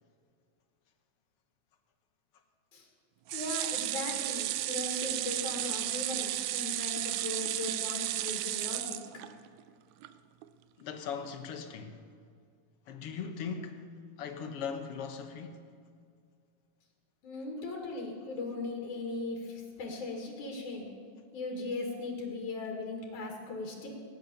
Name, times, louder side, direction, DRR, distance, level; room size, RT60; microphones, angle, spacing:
voice 1, 3.3-9.0 17.2-20.9 21.3-23.9, left 3 dB, 80° left, 3.7 m, -38 dB
sound 1, 3.3-9.6 10.0-10.1 10.4-10.5, right 15 dB, 80° right, 1.8 m, -33 dB
voice 2, 10.8-12.0 12.9-13.8 14.2-15.6, left 6 dB, 60° left, 1.8 m, -39 dB
19.0 x 10.0 x 7.0 m
omnidirectional pair, 3.5 m